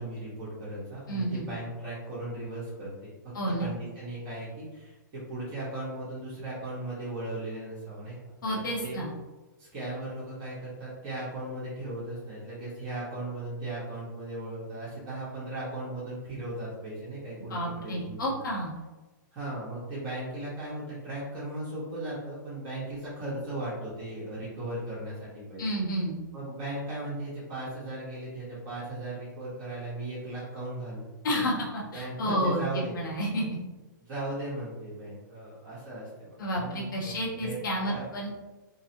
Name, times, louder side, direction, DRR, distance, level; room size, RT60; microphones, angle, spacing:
voice 1, 0.0-9.0 9.6-18.2 19.3-25.6 26.3-31.4 31.9-33.0 34.0-37.6 37.8-38.0, right 1 dB, 35° right, -8 dB, 1.2 m, -37 dB
voice 2, 1.1-1.5 3.3-3.7 8.4-9.1 17.5-18.7 25.6-26.2 31.2-33.6 36.4-38.4, equal, 75° left, -3 dB, 0.8 m, -30 dB
3.7 x 2.0 x 2.8 m, 1.2 s
hypercardioid pair, 130°, 11 cm